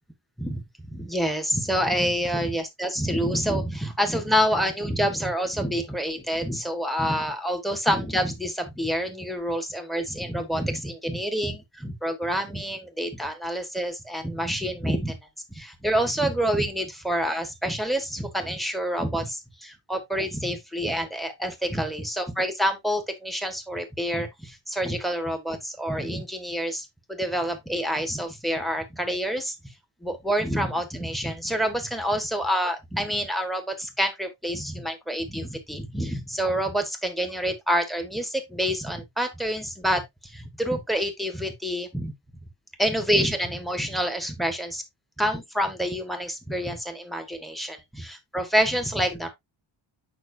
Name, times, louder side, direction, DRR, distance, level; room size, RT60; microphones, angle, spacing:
voice 1, 0.9-15.2 15.5-29.7 30.0-42.1 42.8-44.8 45.2-49.3, equal, ahead, 1.6 m, -27 dB
9.3 x 5.7 x 2.8 m
wide cardioid pair, 180°, 48 cm